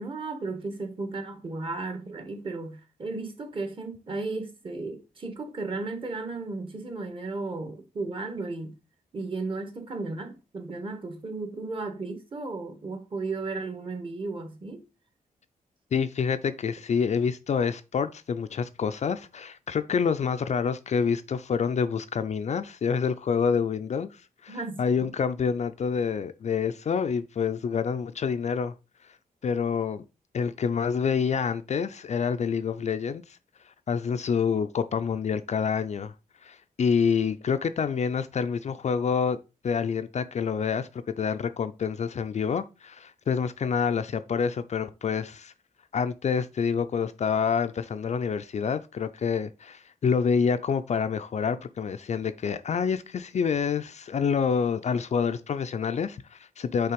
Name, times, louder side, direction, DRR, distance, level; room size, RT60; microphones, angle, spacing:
voice 1, 0.0-8.7 9.1-14.8 24.5-25.1, right 3 dB, 35° right, 1.3 m, -34 dB
voice 2, 15.9-28.7 29.4-30.0 30.3-33.4 33.7-36.1 36.4-39.4 39.6-45.5 45.9-56.9, left 6 dB, 50° left, 0.4 m, -27 dB
5.6 x 3.4 x 5.1 m
wide cardioid pair, 145°, 15 cm